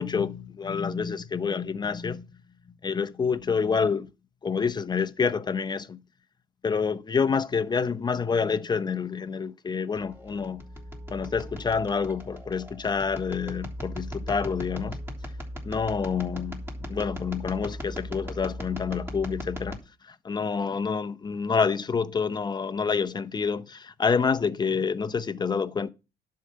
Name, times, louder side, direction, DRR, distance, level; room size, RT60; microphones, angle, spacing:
voice 1, 0.0-2.3 2.8-4.1 4.4-6.0 6.6-10.6 11.1-15.0 15.7-25.9, left 5 dB, 25° left, 0.8 m, -28 dB
sound 1, 9.9-19.8, equal, 15° right, 3.3 m, -38 dB
11.0 x 4.8 x 7.5 m
cardioid pair, 110°, 17 cm